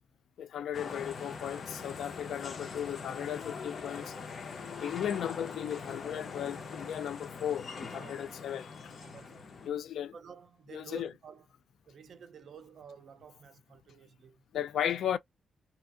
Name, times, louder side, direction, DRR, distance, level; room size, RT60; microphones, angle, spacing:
voice 1, 0.4-4.2 4.6-8.9 9.6-10.1 10.7-11.1 14.5-15.2, left 10 dB, 80° left, 0.4 m, -36 dB
sound 1, 0.7-9.7, left 5 dB, 50° left, 0.7 m, -42 dB
voice 2, 7.9-8.4 9.0-9.5 10.1-11.4 11.9-14.4, right 6 dB, 60° right, 0.5 m, -51 dB
2.8 x 2.5 x 2.4 m
cardioid pair, 95°, 0 cm